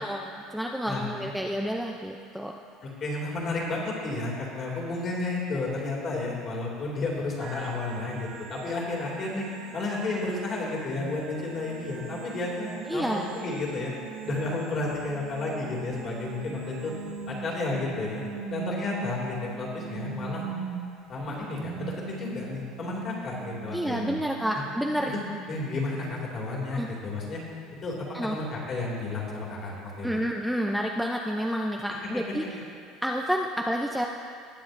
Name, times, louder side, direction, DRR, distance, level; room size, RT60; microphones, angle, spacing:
voice 1, 0.0-2.6 12.9-13.3 23.7-25.2 26.7-26.9 28.1-28.4 30.0-32.4 33.0-34.1, equal, ahead, 1 dB, 0.4 m, -29 dB
voice 2, 2.8-9.5 9.7-13.9 14.2-16.9 17.3-18.2 18.5-20.4 21.1-24.2 24.5-24.6 25.1-25.2 25.5-27.4 27.8-28.0 28.3-30.1, left 2 dB, 35° left, -3 dB, 2.4 m, -32 dB
sound 1, 7.4-25.9, right 7 dB, 70° right, 0.8 m, -41 dB
20.0 x 7.4 x 2.6 m, 2.5 s
cardioid pair, 140°, 0 cm